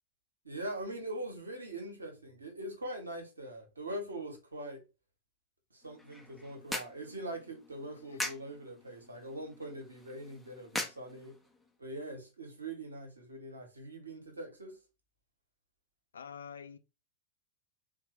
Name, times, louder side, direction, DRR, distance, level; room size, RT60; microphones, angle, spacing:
voice 1, 0.4-4.8 5.7-11.3 11.8-14.8, right 1 dB, 80° right, 1.0 m, -42 dB
sound 1, 5.8-11.8, left 1 dB, 5° left, 0.5 m, -43 dB
voice 2, 7.8-8.2 16.1-16.8, left 7 dB, 70° left, 0.4 m, -48 dB
3.7 x 2.2 x 3.1 m
figure-of-eight pair, 90°, 0 cm